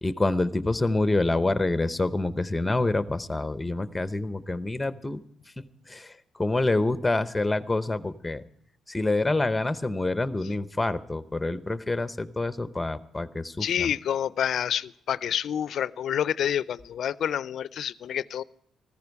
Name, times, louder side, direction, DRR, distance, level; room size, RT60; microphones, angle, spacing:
voice 1, 0.0-5.2 5.6-8.4 8.9-13.9, left 2 dB, 15° left, 13 dB, 0.8 m, -27 dB
voice 2, 13.6-18.4, left 9 dB, 65° left, 19 dB, 0.4 m, -28 dB
14.5 x 14.0 x 4.7 m, 0.70 s
cardioid pair, 90°, 0 cm